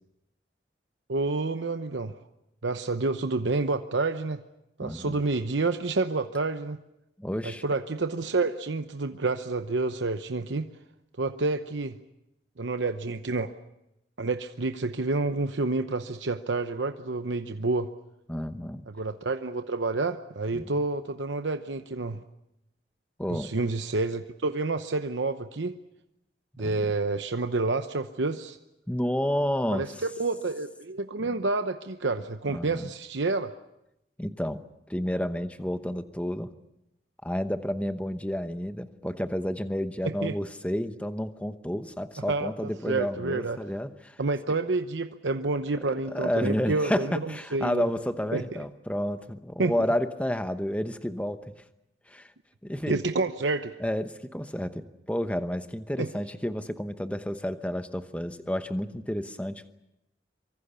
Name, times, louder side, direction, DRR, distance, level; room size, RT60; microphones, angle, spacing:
voice 1, 1.1-2.1 2.6-4.4 4.8-6.8 7.4-10.7 11.2-12.0 12.6-13.5 14.2-17.9 18.9-22.2 23.3-25.8 26.6-28.6 29.7-29.9 30.2-33.5 40.0-40.3 42.3-43.6 44.2-47.9 48.3-48.4 49.6-49.7 52.9-53.7 56.0-56.1, right 3 dB, 85° right, 8 dB, 0.9 m, -29 dB
voice 2, 4.8-5.2 7.2-7.6 18.3-18.8 20.5-20.7 23.2-23.5 26.6-26.9 28.9-30.0 31.2-31.3 32.5-32.9 34.2-34.6 34.9-36.5 37.2-44.2 46.1-51.5 52.1-52.3 52.6-53.0 53.8-59.7, equal, 5° left, 9 dB, 0.9 m, -30 dB
25.0 x 23.5 x 6.9 m, 0.87 s
head